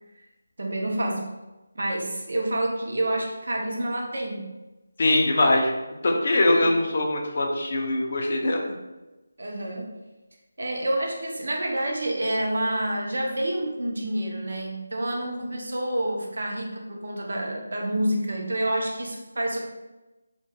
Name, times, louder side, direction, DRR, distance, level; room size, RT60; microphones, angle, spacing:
voice 1, 0.6-1.3 1.7-4.5 6.6-6.7 9.4-10.0 10.6-19.6, right 1 dB, 60° right, 0 dB, 0.5 m, -28 dB
voice 2, 5.0-5.7 6.0-8.6, left 2 dB, 35° left, 0 dB, 0.3 m, -22 dB
2.2 x 2.2 x 2.7 m, 1.1 s
figure-of-eight pair, 175°, 0 cm